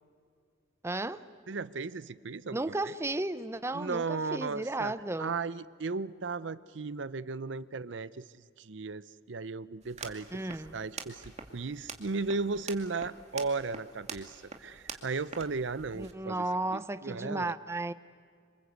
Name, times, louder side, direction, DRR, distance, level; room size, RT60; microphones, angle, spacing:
voice 1, 0.8-1.2 2.5-5.4 10.3-10.8 15.9-17.9, right 2 dB, 15° right, 0.6 m, -34 dB
voice 2, 1.5-2.9 3.7-4.9 5.2-8.2 8.6-10.3 10.7-11.2 11.5-16.4 16.7-17.5, right 4 dB, 70° right, 0.7 m, -35 dB
sound 1, 9.8-16.1, right 5 dB, 35° right, 2.3 m, -46 dB
27.5 x 26.0 x 8.2 m
head